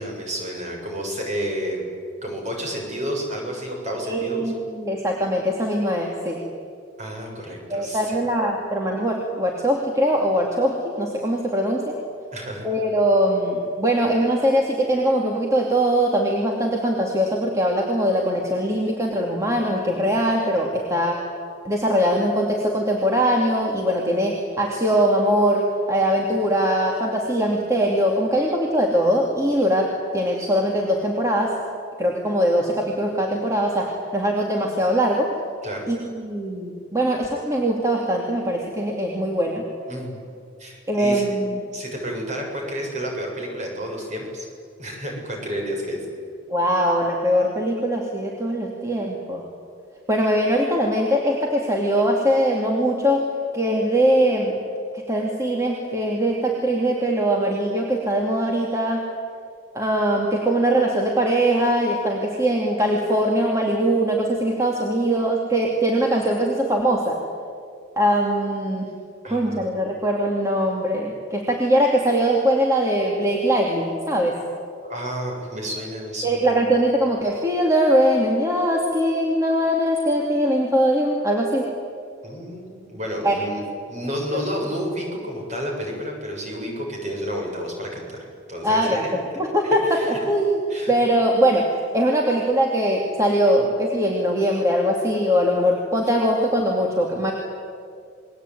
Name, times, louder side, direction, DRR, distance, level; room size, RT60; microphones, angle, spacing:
voice 1, 0.0-1.8 2.2-4.5 7.0-8.2 12.3-12.7 35.6-35.9 39.9-40.2 40.6-41.2 41.7-44.5 44.8-46.0 69.2-69.7 74.8-76.6 82.2-83.6 83.9-89.1 89.6-90.2 90.7-90.9, equal, 35° right, 0 dB, 7.3 m, -30 dB
voice 2, 4.0-6.4 7.7-11.9 12.6-21.2 21.6-31.6 32.0-35.3 35.9-39.6 40.9-41.6 46.5-49.4 50.1-54.6 54.9-59.0 59.7-67.2 68.0-68.9 69.2-74.3 76.2-81.7 83.2-83.3 88.6-90.5 90.9-97.3, equal, 15° right, -1 dB, 2.7 m, -21 dB
29.0 x 21.5 x 9.3 m, 2.3 s
head